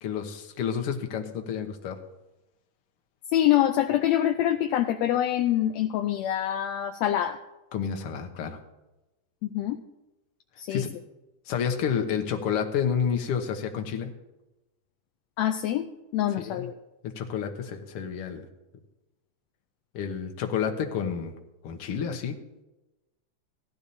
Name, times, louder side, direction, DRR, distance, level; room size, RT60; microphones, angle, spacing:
voice 1, 0.0-2.0 7.7-8.6 10.7-10.9 11.5-14.1 16.4-16.7 17.2-18.5 19.9-21.3 21.6-22.3, left 7 dB, 60° left, 4 dB, 1.8 m, -30 dB
voice 2, 3.3-7.4 9.5-9.8 10.6-10.8 15.4-16.7, left 12 dB, 80° left, 5 dB, 1.6 m, -25 dB
17.0 x 12.0 x 2.7 m, 1.0 s
omnidirectional pair, 3.3 m